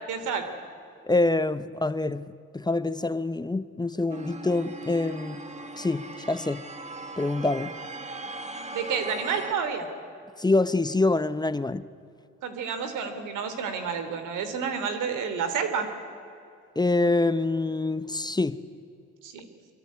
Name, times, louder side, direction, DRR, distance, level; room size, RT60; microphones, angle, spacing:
voice 1, 0.1-0.5 8.7-9.9 12.4-15.9 19.2-19.5, right 6 dB, 90° right, 3.3 m, -30 dB
voice 2, 1.1-2.2 2.5-5.4 5.8-6.6 7.2-7.7 10.4-11.9 16.8-18.6, left 2 dB, 15° left, 0.9 m, -25 dB
sound 1, 4.1-9.5, right 2 dB, 25° right, 2.3 m, -39 dB
25.0 x 23.0 x 9.6 m
cardioid pair, 90°, 30 cm